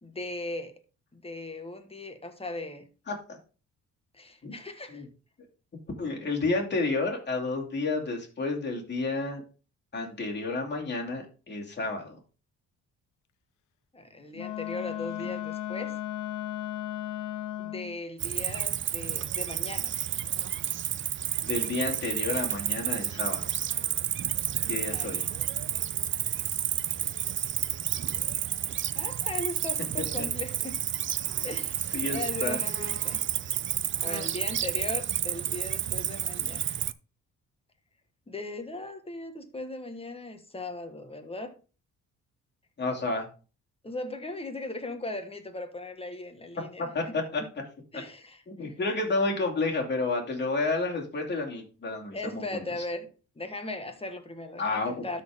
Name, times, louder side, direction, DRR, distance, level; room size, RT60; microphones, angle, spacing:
voice 1, 0.0-0.7 1.1-2.9 4.1-5.0 13.9-16.0 17.6-19.9 24.9-25.3 28.9-30.8 31.4-33.2 34.0-36.6 38.3-41.5 43.8-47.1 47.9-48.7 52.1-53.1 53.3-55.2, left 2 dB, 20° left, 7 dB, 1.5 m, -38 dB
voice 2, 3.1-3.4 4.4-4.5 4.9-5.1 6.0-9.4 9.9-12.2 21.4-23.5 24.7-25.2 31.9-32.6 42.8-43.3 46.8-47.4 47.9-48.0 48.5-52.6 54.6-55.2, left 3 dB, 35° left, 0 dB, 2.6 m, -30 dB
Wind instrument woodwind instrument, 14.3-18.0, left 13 dB, 75° left, 0.6 m, -35 dB
Cricket, 18.2-36.9, right 10 dB, 40° right, 0.5 m, -30 dB
12.5 x 4.3 x 3.6 m, 0.35 s
cardioid pair, 90°, 30 cm